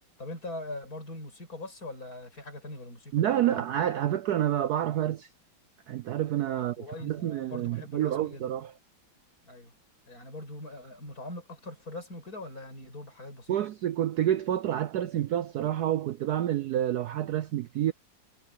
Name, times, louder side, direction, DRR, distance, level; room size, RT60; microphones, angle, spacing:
voice 1, 0.2-3.6 6.6-8.5 9.4-9.7 10.1-13.7, left 2 dB, 50° left, 6.8 m, -42 dB
voice 2, 3.1-5.3 5.9-6.8 7.0-8.7 13.5-17.9, right 11 dB, 70° right, 1.0 m, -28 dB
omnidirectional pair, 2.1 m